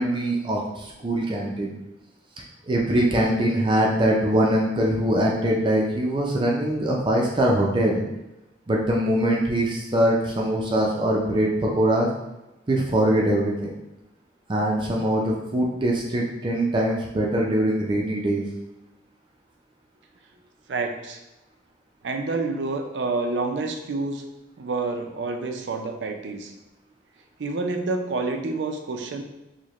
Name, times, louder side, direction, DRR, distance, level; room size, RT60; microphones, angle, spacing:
voice 1, 0.0-1.8 2.7-8.0 8.7-12.1 12.7-13.8 14.5-18.4, right 1 dB, 30° right, -2 dB, 0.4 m, -22 dB
voice 2, 20.7-21.2 22.0-24.2 24.6-26.5 27.4-29.2, right 3 dB, 85° right, 5 dB, 0.5 m, -28 dB
4.8 x 2.1 x 3.0 m, 0.96 s
head